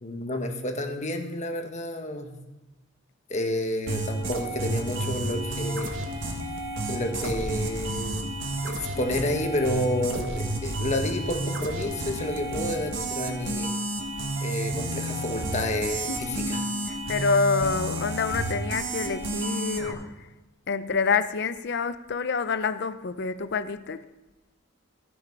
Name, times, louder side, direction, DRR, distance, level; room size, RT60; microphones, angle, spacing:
voice 1, 0.0-2.3 3.3-5.9 6.9-8.2 8.6-13.7 14.4-16.6, left 1 dB, 35° left, 1.3 m, -30 dB
sound 1, 3.9-19.9, right 2 dB, 70° right, 1.6 m, -31 dB
voice 2, 16.1-20.3 20.7-24.0, left 5 dB, 60° left, 0.6 m, -27 dB
14.0 x 7.0 x 5.4 m
head